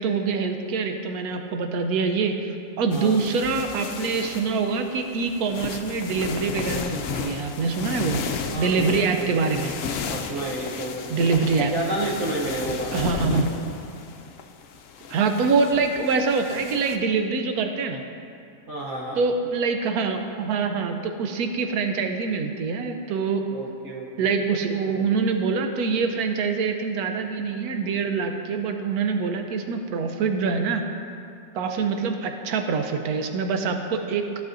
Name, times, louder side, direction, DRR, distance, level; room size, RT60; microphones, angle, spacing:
voice 1, 0.0-2.4 2.8-8.2 8.6-9.7 11.1-11.7 12.9-13.5 15.1-18.0 19.2-23.4 24.2-30.8 31.5-34.3, right 4 dB, 80° right, 5 dB, 1.2 m, -25 dB
sound 1, 2.9-17.0, left 6 dB, 70° left, 0.9 m, -34 dB
voice 2, 8.5-9.5 10.1-11.3 11.6-13.1 18.7-19.2 23.5-24.3, right 2 dB, 60° right, -4 dB, 1.0 m, -31 dB
14.5 x 5.7 x 2.5 m, 2.5 s
omnidirectional pair, 1.6 m